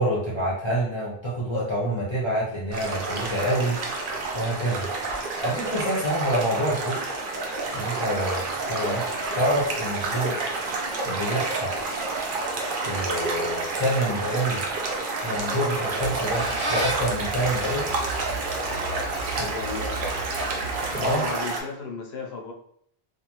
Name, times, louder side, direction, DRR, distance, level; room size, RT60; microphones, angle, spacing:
voice 1, 0.0-3.8 4.3-4.9 5.4-7.0 7.7-9.0 9.3-10.4 11.0-11.8 12.8-14.6 15.2-17.9 19.4-19.5 20.9-21.2, right 1 dB, 30° left, -7 dB, 0.7 m, -27 dB
sound 1, 2.7-21.6, right 3 dB, 60° right, 0.7 m, -29 dB
Squeak, 15.8-21.3, right 1 dB, 80° right, 1.1 m, -34 dB
voice 2, 19.4-20.2 20.9-22.5, left 4 dB, 80° left, 1 dB, 0.9 m, -35 dB
2.5 x 2.3 x 2.9 m, 0.67 s
omnidirectional pair, 1.1 m